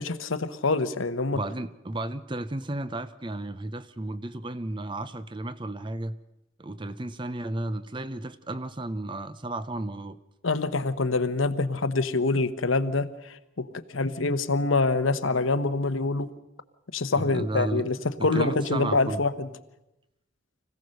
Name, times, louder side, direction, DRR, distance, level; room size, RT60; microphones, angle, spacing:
voice 1, 0.0-1.4 10.4-16.3 16.9-19.5, left 3 dB, 85° left, 11 dB, 1.0 m, -26 dB
voice 2, 1.3-6.2 6.6-10.2 17.1-17.9 18.2-19.2, right 2 dB, 25° right, 13 dB, 0.6 m, -33 dB
25.0 x 16.0 x 6.5 m, 0.94 s
head